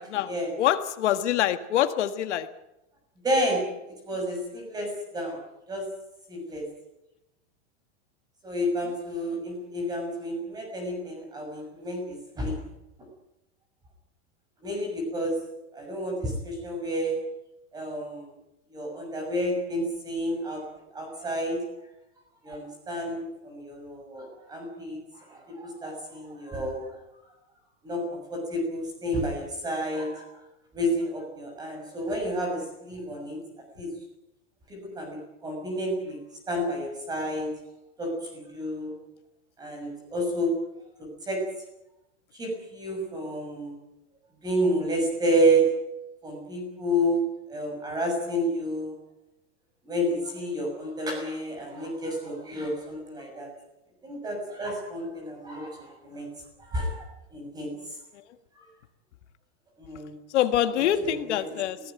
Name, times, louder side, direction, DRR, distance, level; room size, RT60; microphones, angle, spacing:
voice 1, 0.0-0.3 0.6-2.5 60.3-61.8, left 11 dB, 75° left, 9 dB, 1.7 m, -25 dB
voice 2, 3.2-3.6 4.0-5.4 5.7-5.8 6.3-6.6 8.4-12.6 14.6-15.4 15.7-17.2 17.7-18.2 18.7-20.6 20.9-21.6 22.4-25.0 25.3-26.9 27.8-30.2 30.7-33.4 33.8-33.9 34.7-36.2 36.5-37.5 38.0-38.9 39.6-40.5 41.0-41.4 42.4-43.8 44.4-45.7 46.2-47.2 47.5-48.9 49.9-53.5 54.0-56.3 56.7-57.7 58.6-58.7 59.8-60.1 60.8-61.4, equal, 10° right, 3 dB, 6.5 m, -30 dB
22.5 x 17.5 x 9.2 m, 0.90 s
supercardioid pair, 175°, 35 cm